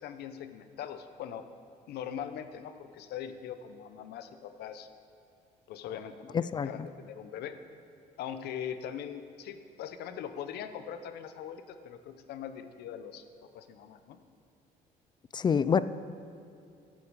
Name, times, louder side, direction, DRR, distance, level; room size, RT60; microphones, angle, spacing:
voice 1, 0.0-1.4 1.9-4.9 5.7-6.4 6.6-7.6 8.2-13.2 13.5-14.2, left 9 dB, 75° left, 10 dB, 0.8 m, -41 dB
voice 2, 6.3-6.7 15.3-15.8, left 6 dB, 25° left, 16 dB, 0.4 m, -26 dB
14.5 x 8.4 x 4.9 m, 2.6 s
cardioid pair, 110°, 17 cm